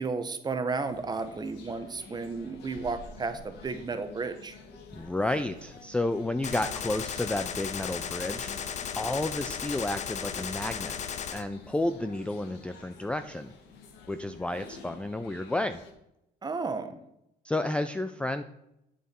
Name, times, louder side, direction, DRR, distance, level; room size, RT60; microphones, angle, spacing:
voice 1, 0.0-4.6 16.4-17.0, right 4 dB, 25° right, 9 dB, 1.0 m, -33 dB
sound 1, 0.8-15.9, left 3 dB, 80° left, 1.5 m, -50 dB
voice 2, 4.9-8.5 9.0-11.0 11.3-13.5 14.1-15.8 17.4-18.4, left 2 dB, 5° left, 9 dB, 0.4 m, -31 dB
Gunshot gunfire, 6.4-11.4, left 7 dB, 45° left, 0.7 m, -35 dB
8.8 x 6.9 x 4.4 m, 0.83 s
cardioid pair, 110°, 17 cm